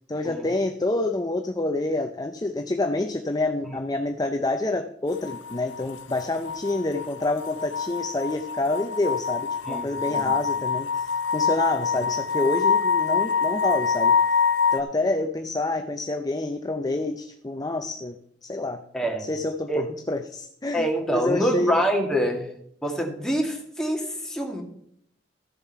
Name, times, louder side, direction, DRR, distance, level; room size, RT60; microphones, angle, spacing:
voice 1, 0.1-14.2 14.7-18.2 18.4-18.8 19.2-21.8, left 2 dB, 20° left, 6 dB, 0.5 m, -27 dB
sound 1, 5.1-14.8, left 6 dB, 70° left, 0.6 m, -25 dB
voice 2, 20.7-22.5 22.8-24.6, equal, 5° left, 1 dB, 1.8 m, -25 dB
13.5 x 7.0 x 4.6 m, 0.68 s
head